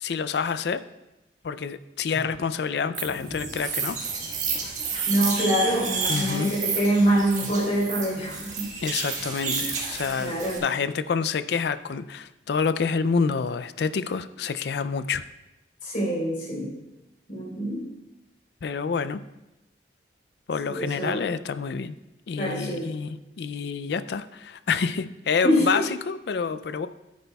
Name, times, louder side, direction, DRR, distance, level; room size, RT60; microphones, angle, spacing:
voice 1, 0.0-0.8 1.4-4.0 6.1-6.5 8.8-15.2 18.6-19.2 20.5-21.9 22.3-26.9, left 5 dB, 65° left, 13 dB, 0.4 m, -28 dB
sound 1, 2.9-10.6, right 5 dB, 40° right, 1.6 m, -31 dB
voice 2, 5.1-8.7 9.4-9.6 10.2-10.6 15.8-16.7 17.3-17.8 20.7-21.2 22.4-22.9 25.4-25.9, equal, 45° left, -3 dB, 3.6 m, -25 dB
13.0 x 9.4 x 2.3 m, 0.97 s
head